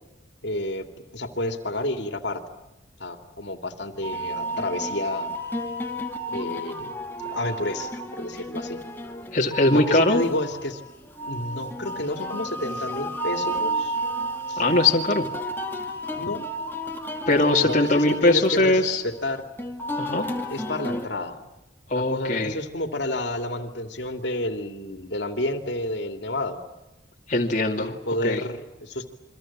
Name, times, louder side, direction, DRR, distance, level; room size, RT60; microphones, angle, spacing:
voice 1, 0.4-2.4 3.0-5.3 6.3-6.9 7.2-8.8 9.7-10.8 11.3-14.0 14.5-14.6 16.1-16.5 17.4-19.4 20.5-21.4 21.9-26.6 27.8-29.1, left 1 dB, 60° left, 7 dB, 2.8 m, -30 dB
sound 1, 4.0-21.1, right 1 dB, 10° left, 2.5 m, -32 dB
voice 2, 9.3-10.2 14.6-15.2 17.3-19.0 20.0-20.3 21.9-22.5 27.3-28.0 28.2-28.4, left 2 dB, 40° left, 0 dB, 2.4 m, -21 dB
28.5 x 24.5 x 7.4 m, 0.97 s
head